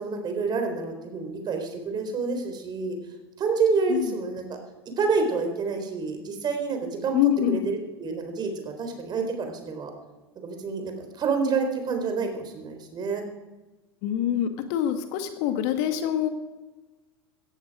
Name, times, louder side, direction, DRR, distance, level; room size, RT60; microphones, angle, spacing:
voice 1, 0.0-3.0 3.4-4.6 5.0-7.2 7.5-9.9 10.4-13.2, right 4 dB, 30° right, 5 dB, 4.0 m, -28 dB
voice 2, 7.1-7.7 14.0-16.3, left 11 dB, 50° left, 8 dB, 1.7 m, -25 dB
17.5 x 14.0 x 4.9 m, 1.2 s
figure-of-eight pair, 85°, 14 cm